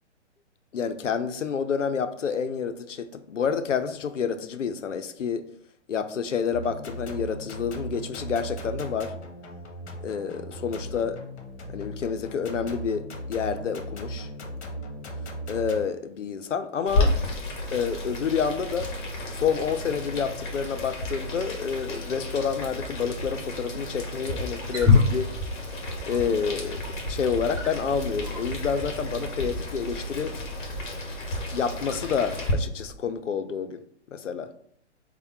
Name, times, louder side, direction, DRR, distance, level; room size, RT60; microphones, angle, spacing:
voice 1, 0.7-5.4 5.9-9.1 10.0-11.2 11.7-14.3 15.5-17.1 17.7-18.9 19.3-25.3 26.1-30.3 31.5-33.8 34.1-34.5, left 6 dB, 85° left, 10 dB, 0.6 m, -29 dB
sound 1, 6.5-15.9, equal, 65° left, 1.0 m, -37 dB
Boiling, 16.9-32.5, left 1 dB, 45° left, 1.2 m, -32 dB
Wild animals, 24.4-32.9, left 4 dB, 10° right, 0.8 m, -30 dB
3.4 x 2.2 x 4.3 m, 0.65 s
figure-of-eight pair, 125°, 36 cm